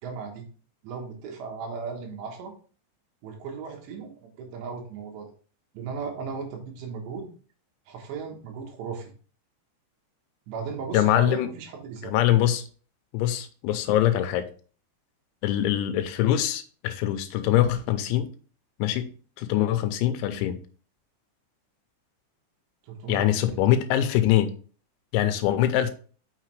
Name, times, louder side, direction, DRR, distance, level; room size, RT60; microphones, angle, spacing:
voice 1, 0.0-0.4 0.8-2.5 3.2-5.3 5.7-7.3 7.9-9.1 10.5-12.2 22.8-23.3, right 5 dB, 70° right, 2 dB, 3.4 m, -36 dB
voice 2, 10.9-11.5 12.0-12.6 13.1-14.5 15.4-18.3 18.8-19.1 19.4-20.6 23.1-24.5 25.1-25.9, left 12 dB, 85° left, 10 dB, 2.9 m, -23 dB
6.6 x 6.1 x 3.2 m, 0.40 s
omnidirectional pair, 5.4 m